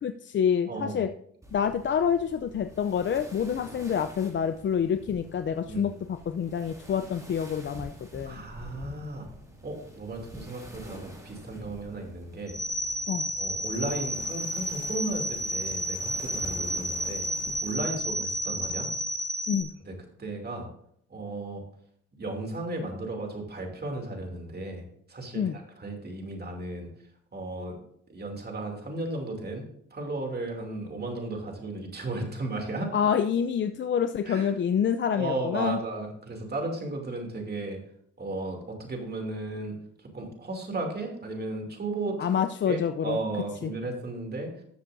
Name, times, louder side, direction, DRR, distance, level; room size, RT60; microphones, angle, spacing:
voice 1, 0.0-1.1 1.5-8.4 13.1-13.3 19.5-19.7 25.3-25.6 32.9-35.8 42.2-43.2 43.6-43.7, left 8 dB, 40° left, 9 dB, 0.5 m, -27 dB
voice 2, 0.7-1.0 5.7-5.9 8.2-9.3 9.6-12.5 13.4-17.3 17.6-18.9 19.9-20.0 20.2-20.7 21.1-21.6 22.2-26.9 27.3-27.8 28.1-29.6 29.9-32.9 34.2-34.5 35.1-37.8 38.2-39.7 40.1-42.2 42.7-44.5, right 2 dB, 35° right, 2 dB, 2.7 m, -34 dB
sound 1, 1.4-19.0, right 1 dB, 10° right, 2.2 m, -47 dB
sound 2, 12.5-19.6, equal, 25° left, 1.8 m, -31 dB
13.5 x 7.4 x 2.6 m, 0.69 s
cardioid pair, 90°, 30 cm